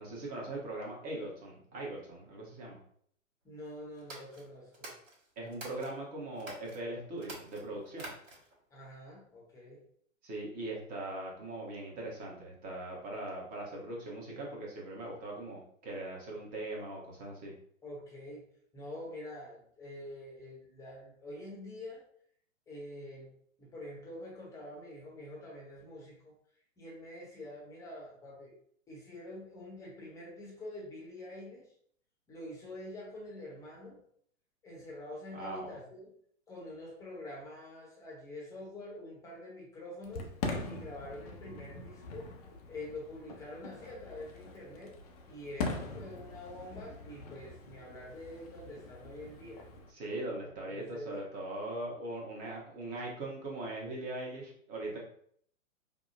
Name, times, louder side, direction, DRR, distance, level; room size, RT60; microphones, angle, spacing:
voice 1, 0.0-2.8 5.4-8.1 10.2-17.5 35.3-35.8 49.9-55.0, right 2 dB, 20° right, -2 dB, 0.9 m, -40 dB
voice 2, 3.4-4.9 8.7-9.8 17.8-18.4 18.7-22.0 22.7-23.3 23.6-26.3 26.8-28.5 28.9-31.7 32.3-34.0 34.6-36.1 36.5-40.3 40.7-42.3 42.7-45.0 45.3-49.6 50.4-51.2, left 1 dB, 10° left, -3 dB, 0.8 m, -46 dB
sound 1, 4.0-5.9 6.4-6.8 7.2-8.6, right 2 dB, 70° right, 1.4 m, -48 dB
Fireworks, 40.0-49.9, left 3 dB, 30° left, 0.5 m, -42 dB
4.8 x 2.0 x 2.4 m, 0.63 s
figure-of-eight pair, 115°, 40 cm